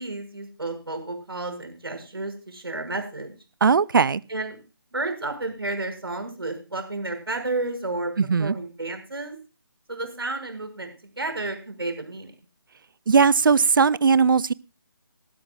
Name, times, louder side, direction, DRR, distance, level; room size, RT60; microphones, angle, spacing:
voice 1, 0.0-3.3 4.3-4.6 4.9-8.1 8.4-9.4 9.9-10.9 11.2-12.3, right 2 dB, 85° right, 6.2 m, -31 dB
voice 2, 3.6-4.2 8.2-8.5 13.1-14.5, right 5 dB, 60° right, 0.6 m, -18 dB
20.0 x 13.0 x 2.4 m
figure-of-eight pair, 155°, 12 cm